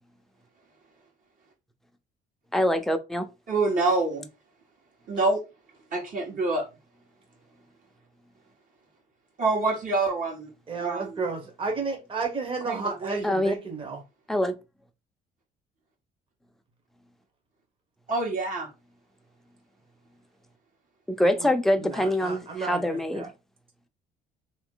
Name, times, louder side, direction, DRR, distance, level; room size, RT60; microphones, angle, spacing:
voice 1, 2.5-3.3 13.2-13.5 14.3-14.5 21.1-23.3, left 1 dB, ahead, 0.5 m, -24 dB
voice 2, 3.5-4.3 5.1-5.4 5.9-6.6 9.4-10.5 10.8-11.2 12.7-13.2 18.1-18.7, right 3 dB, 55° right, 1.7 m, -26 dB
voice 3, 10.7-14.0 21.2-21.5 21.8-23.3, right 4 dB, 30° right, 1.2 m, -32 dB
3.1 x 3.0 x 3.8 m
cardioid pair, 110°, 17 cm